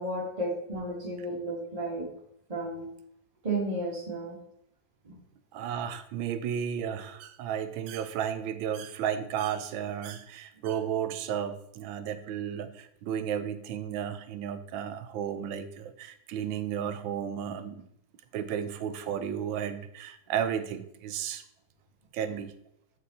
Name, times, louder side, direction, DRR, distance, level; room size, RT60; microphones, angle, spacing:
voice 1, 0.0-2.1 2.5-2.9 3.4-4.4 5.0-5.2, right 1 dB, 20° right, -2 dB, 1.6 m, -33 dB
voice 2, 5.5-17.9 18.3-21.4 22.1-22.5, right 9 dB, 85° right, 10 dB, 1.4 m, -33 dB
8.0 x 4.7 x 4.1 m, 0.74 s
omnidirectional pair, 2.1 m